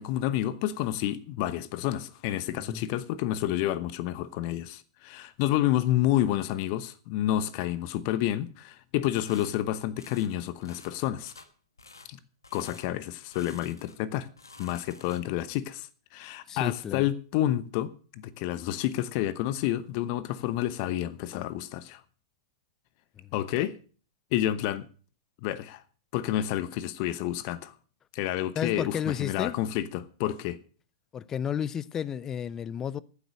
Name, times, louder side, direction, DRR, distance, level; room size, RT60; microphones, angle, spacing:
voice 1, 0.0-11.3 12.1-12.2 12.5-14.3 14.6-15.9 16.1-22.0 23.3-23.8 24.3-24.9 25.4-25.8 26.1-27.7 28.1-30.6, left 13 dB, 45° left, 1.0 m, -29 dB
voice 2, 2.5-2.9 12.9-13.0 16.5-17.1 23.2-23.3 28.6-29.6 31.1-33.0, left 8 dB, 25° left, 0.6 m, -32 dB
sound 1, 9.3-9.5 10.0-10.3 10.6-10.9 11.2-11.5 11.8-12.1 12.4-12.9 13.3-14.0 14.3-15.4, left 3 dB, 85° left, 1.4 m, -50 dB
14.5 x 8.1 x 6.4 m
figure-of-eight pair, 100°, 2 cm